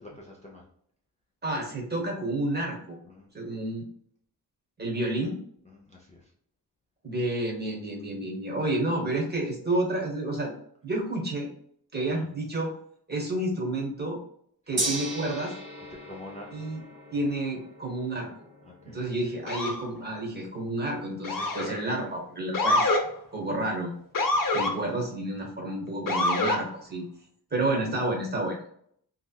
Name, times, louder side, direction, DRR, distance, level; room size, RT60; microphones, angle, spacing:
voice 1, 0.1-0.6 3.1-3.3 5.7-6.2 12.1-12.3 14.7-14.9 16.1-16.5 18.7-19.0, left 2 dB, 15° left, -3 dB, 0.5 m, -46 dB
voice 2, 1.4-3.0 3.3-3.8 4.8-5.4 7.0-10.5 10.8-11.5 11.9-12.7 13.1-14.2 14.7-15.5 16.5-16.8 17.1-18.3 18.8-23.0 23.3-23.9 24.5-27.0 27.5-28.7, right 1 dB, 25° right, -1 dB, 1.0 m, -30 dB
Gong, 14.8-25.0, right 1 dB, 60° right, 1.2 m, -40 dB
Motor vehicle (road) / Siren, 19.5-19.8 21.2-21.8 22.5-23.0 24.1-24.7 26.1-26.6, left 2 dB, 55° left, 0.7 m, -25 dB
3.2 x 2.8 x 2.2 m, 0.65 s
wide cardioid pair, 130°, 40 cm